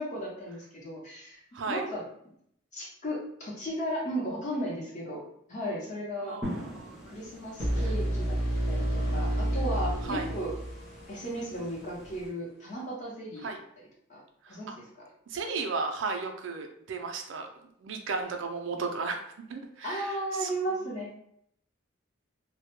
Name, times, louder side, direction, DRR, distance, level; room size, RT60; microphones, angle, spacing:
voice 1, 0.0-1.4 1.7-2.0 2.7-5.2 5.5-6.4 7.0-8.4 8.7-10.5 11.1-13.5 14.1-14.2 14.5-14.8 19.8-21.2, equal, 35° left, -4 dB, 0.7 m, -35 dB
voice 2, 1.5-1.8 6.2-7.0 7.8-7.9 10.0-10.3 13.4-13.6 14.4-14.7 15.3-17.5 17.8-19.2 19.5-20.5, right 4 dB, 70° right, 5 dB, 0.4 m, -34 dB
sound 1, 6.4-12.3, equal, 5° right, 0.5 m, -44 dB
sound 2, 7.6-11.5, right 1 dB, 85° left, 0.6 m, -30 dB
2.1 x 2.1 x 2.9 m, 0.71 s
head